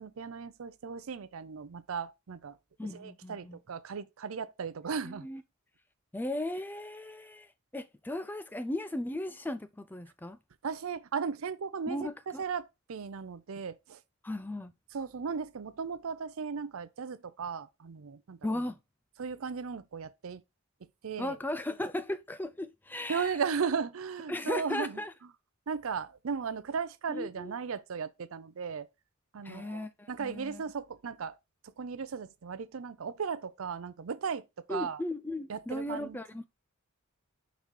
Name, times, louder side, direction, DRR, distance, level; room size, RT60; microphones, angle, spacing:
voice 1, 0.0-2.6 2.9-5.3 10.6-12.1 12.4-14.0 14.9-18.4 19.2-20.4 21.0-21.4 23.1-25.0 25.7-28.9 29.3-31.4 31.8-35.0 35.5-36.2, right 6 dB, 75° right, 0.5 m, -36 dB
voice 2, 2.8-3.6 5.0-5.4 6.1-10.4 11.9-12.4 14.2-14.7 18.4-18.8 21.2-23.4 24.3-25.1 27.1-27.5 29.4-30.6 34.7-36.5, left 1 dB, 10° left, 0.3 m, -36 dB
5.1 x 4.1 x 4.6 m
head